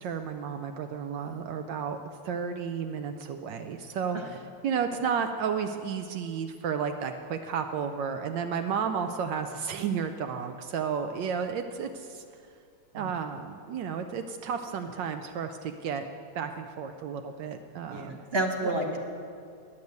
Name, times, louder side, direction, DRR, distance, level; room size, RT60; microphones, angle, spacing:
voice 1, 0.0-2.0 2.2-12.2 12.9-16.0 16.3-18.1, right 6 dB, 80° right, 6 dB, 1.3 m, -32 dB
voice 2, 17.9-19.0, right 1 dB, 40° right, 1 dB, 1.0 m, -30 dB
10.5 x 8.4 x 8.0 m, 2.4 s
omnidirectional pair, 2.0 m